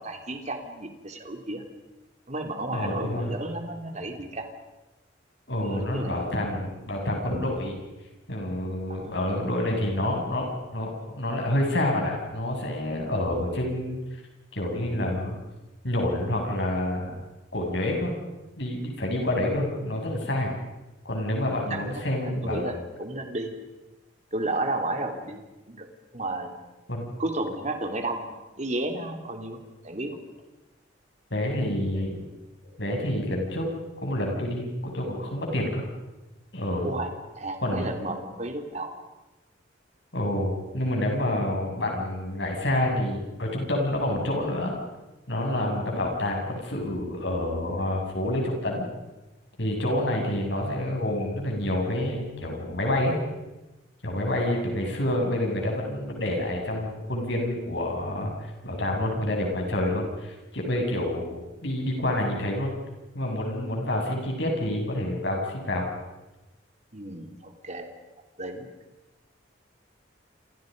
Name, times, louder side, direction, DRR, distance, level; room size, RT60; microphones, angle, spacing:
voice 1, 0.0-1.6 2.3-4.5 5.5-6.3 8.9-9.1 21.7-23.5 24.3-25.9 26.1-26.5 27.2-29.6 29.8-30.2 36.8-37.1 37.4-38.9 66.9-67.9 68.4-68.7, right 2 dB, 35° right, 4 dB, 3.1 m, -33 dB
voice 2, 2.7-3.4 5.5-7.8 8.3-14.0 14.5-15.4 15.8-17.1 17.5-18.1 18.6-20.5 21.0-22.6 26.9-27.1 31.3-32.2 32.8-33.7 34.0-35.8 36.5-36.9 37.6-37.9 40.1-44.7 45.3-48.9 49.6-53.2 54.0-61.3 61.6-62.7 63.1-65.9, left 1 dB, 65° left, 0 dB, 7.6 m, -28 dB
28.0 x 28.0 x 5.4 m, 1.1 s
head